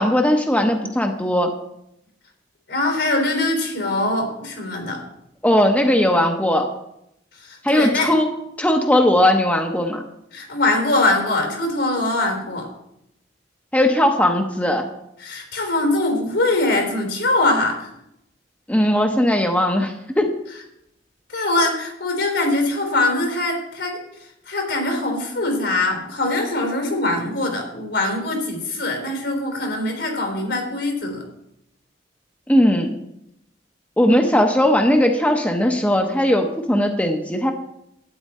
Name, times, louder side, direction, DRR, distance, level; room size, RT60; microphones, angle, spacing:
voice 1, 0.0-1.5 5.4-6.7 7.6-8.3 8.6-10.0 13.7-14.9 18.7-20.3 32.5-32.9 34.0-37.5, left 1 dB, 10° left, 3 dB, 0.8 m, -18 dB
voice 2, 2.7-5.0 7.4-8.1 10.3-12.7 15.2-17.9 21.3-24.0 24.5-31.2, left 2 dB, 80° left, 2 dB, 3.7 m, -22 dB
12.0 x 9.4 x 4.3 m, 0.81 s
head